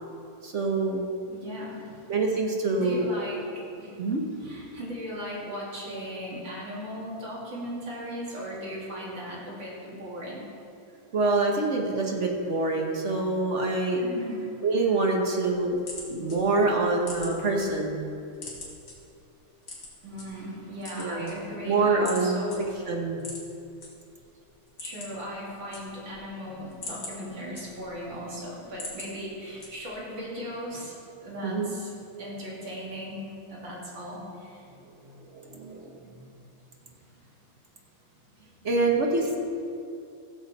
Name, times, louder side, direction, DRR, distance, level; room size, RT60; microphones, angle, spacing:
voice 1, 0.4-1.1 2.1-3.1 4.0-4.2 11.1-14.0 14.6-15.8 16.1-18.0 20.9-21.3 21.6-22.4 22.9-23.2 31.4-31.8 35.0-36.0 38.6-39.4, right 3 dB, 45° right, 0 dB, 1.0 m, -26 dB
voice 2, 1.3-2.1 2.7-10.4 14.0-14.5 20.0-22.8 24.8-31.9 32.2-33.2 33.5-34.7 38.8-38.9, equal, 60° right, -5 dB, 3.2 m, -38 dB
sound 1, 15.7-17.7 18.0-18.9 19.6-20.2 20.7-21.7 22.0-22.2 22.5-22.6 23.2-23.9 24.2-24.3 24.6-25.2 25.5-26.2 26.6-28.1 28.5-29.1 29.6-30.0, left 3 dB, 50° left, 2.8 m, -41 dB
16.0 x 7.4 x 4.2 m, 2.6 s
omnidirectional pair, 2.4 m